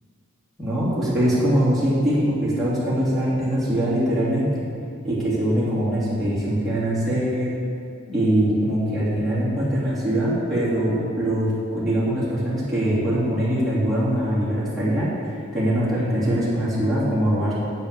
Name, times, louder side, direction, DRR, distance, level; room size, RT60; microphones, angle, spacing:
voice 1, 0.6-4.6 5.0-7.5 8.1-15.1 15.5-17.5, right 1 dB, ahead, -11 dB, 3.2 m, -22 dB
9.0 x 8.3 x 6.9 m, 2.3 s
head